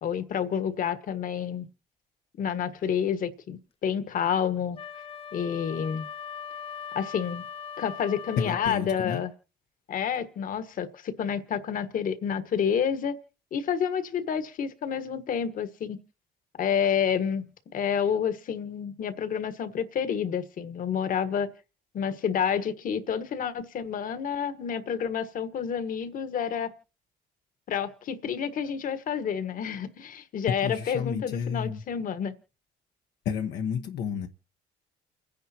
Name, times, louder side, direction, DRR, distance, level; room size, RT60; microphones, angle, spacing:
voice 1, 0.0-1.7 2.4-4.8 5.3-6.1 6.9-7.4 7.8-9.3 9.9-13.2 13.5-16.0 16.6-17.4 17.7-21.5 21.9-26.7 27.7-32.3, left 7 dB, 55° left, 1.5 m, -29 dB
Wind instrument woodwind instrument, 4.7-8.7, left 7 dB, 35° left, 0.8 m, -40 dB
voice 2, 8.4-9.2 30.6-31.8 33.2-34.3, left 7 dB, 75° left, 1.1 m, -31 dB
29.0 x 10.5 x 2.9 m
cardioid pair, 110°, 17 cm